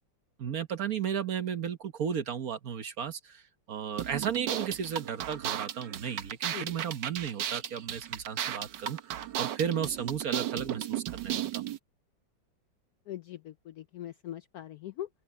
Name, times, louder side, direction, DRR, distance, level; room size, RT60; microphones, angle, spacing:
voice 1, 0.4-3.4 3.7-11.6, right 8 dB, 55° right, 1.4 m, -34 dB
sound 1, 4.0-11.8, right 11 dB, 70° right, 1.6 m, -35 dB
voice 2, 13.1-15.1, left 12 dB, 70° left, 0.9 m, -41 dB
open air
omnidirectional pair, 2.0 m